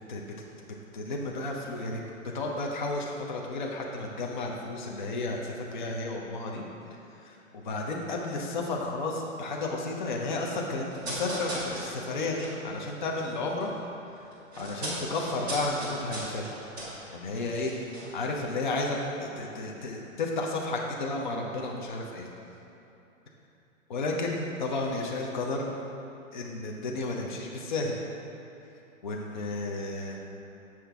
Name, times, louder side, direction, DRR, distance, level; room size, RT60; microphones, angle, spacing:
voice 1, 0.9-2.0 2.3-6.7 7.2-13.7 14.0-14.1 14.6-16.4 17.1-17.7 18.1-22.3 23.9-25.7 26.3-28.0 29.0-30.2, left 2 dB, 35° left, -1 dB, 0.6 m, -32 dB
sound 1, 10.9-13.8 14.0-18.6 18.9-19.0, right 1 dB, 5° right, 0.7 m, -38 dB
7.5 x 5.9 x 3.4 m, 3.0 s
hypercardioid pair, 175°, 41 cm